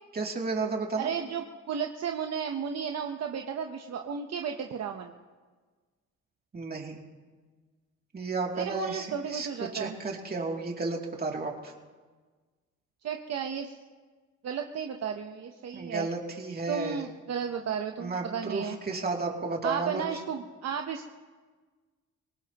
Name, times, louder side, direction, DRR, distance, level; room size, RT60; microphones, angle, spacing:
voice 1, 0.1-1.1 6.5-7.0 8.1-11.7 15.7-17.0 18.0-20.2, right 3 dB, 30° right, 0 dB, 2.8 m, -33 dB
voice 2, 1.0-5.1 8.5-10.0 13.0-13.7 14.4-16.1 16.7-18.8 19.6-21.1, right 7 dB, 60° right, 4 dB, 1.0 m, -33 dB
24.5 x 18.5 x 3.0 m, 1.4 s
cardioid pair, 90°, 30 cm